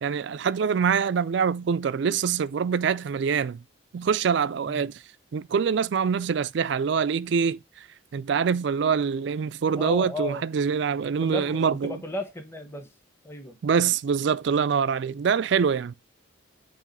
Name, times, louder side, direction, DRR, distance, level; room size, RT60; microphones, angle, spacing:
voice 1, 0.0-3.6 3.9-4.9 5.3-7.6 8.1-12.0 13.6-15.9, right 6 dB, 55° right, 0.3 m, -24 dB
voice 2, 9.8-10.4 11.2-12.9 13.2-13.6, left 2 dB, 10° left, 0.9 m, -34 dB
7.3 x 3.0 x 5.3 m
head